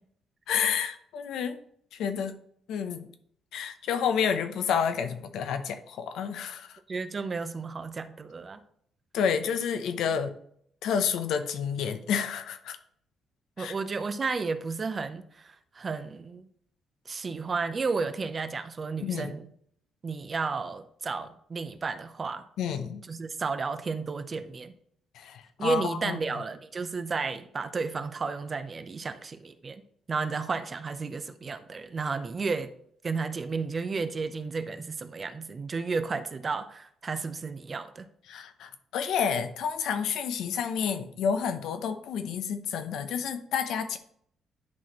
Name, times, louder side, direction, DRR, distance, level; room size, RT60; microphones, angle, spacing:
voice 1, 0.5-1.6 1.9-2.4 2.7-3.1 3.5-6.8 9.1-10.3 10.8-12.8 13.6-13.7 19.0-19.3 22.6-23.0 25.1-26.4 38.3-44.0, left 7 dB, 80° left, 9 dB, 0.7 m, -30 dB
voice 2, 6.9-8.6 13.6-16.5 17.1-19.5 20.0-22.4 23.1-24.7 25.6-29.8 30.1-32.7 33.0-38.1, right 4 dB, 35° right, 10 dB, 0.6 m, -32 dB
10.5 x 4.2 x 3.1 m, 0.66 s
cardioid pair, 115°, 0 cm